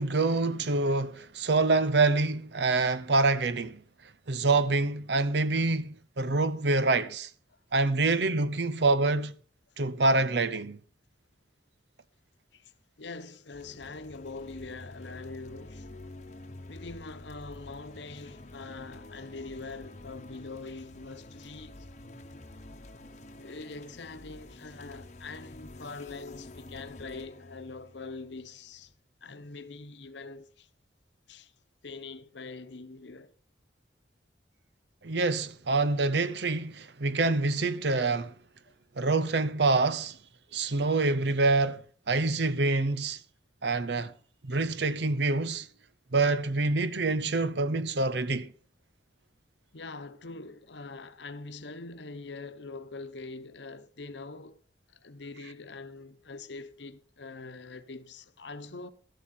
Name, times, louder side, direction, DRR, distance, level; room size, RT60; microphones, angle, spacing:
voice 1, 0.0-3.8 4.3-7.3 7.7-9.3 9.8-10.8 35.0-38.3 39.0-40.2 40.5-43.2 43.6-44.1 44.4-45.7 46.1-48.5, right 3 dB, 65° right, 0.7 m, -26 dB
voice 2, 13.0-15.9 16.7-21.9 23.4-28.9 29.2-30.7 31.3-31.5 31.8-33.3 42.3-42.4 49.7-54.6 54.9-58.9, left 3 dB, 70° left, 1.0 m, -43 dB
sound 1, 13.5-28.9, left 2 dB, 40° left, 1.0 m, -48 dB
12.5 x 11.5 x 4.4 m
head